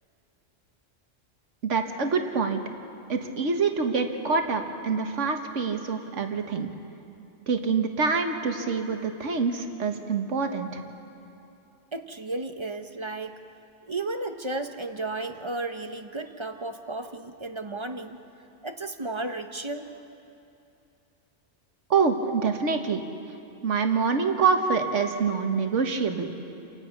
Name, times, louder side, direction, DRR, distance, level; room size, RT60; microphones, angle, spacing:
voice 1, 1.6-2.6 3.1-6.7 7.5-10.8 21.9-23.0 23.6-26.3, right 5 dB, 75° right, 5 dB, 1.7 m, -26 dB
voice 2, 11.9-13.4 13.9-18.2 18.6-19.9, right 2 dB, 25° right, 7 dB, 0.8 m, -33 dB
29.5 x 17.0 x 5.9 m, 2.7 s
omnidirectional pair, 1.3 m